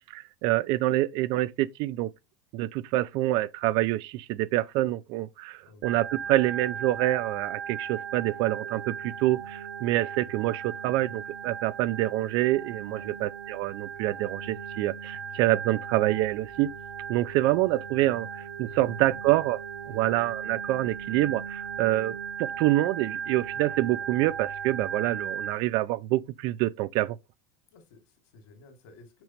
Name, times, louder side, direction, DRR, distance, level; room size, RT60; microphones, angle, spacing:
voice 1, 0.1-2.1 2.5-16.7 17.1-27.2, right 16 dB, 55° right, 0.5 m, -26 dB
voice 2, 5.6-6.0 12.9-13.1 18.7-19.3 19.9-20.1 27.7-29.2, left 3 dB, 70° left, 2.5 m, -54 dB
Organ, 5.8-25.5, right 7 dB, 90° right, 1.7 m, -37 dB
6.1 x 5.0 x 3.1 m
supercardioid pair, 140°, 9 cm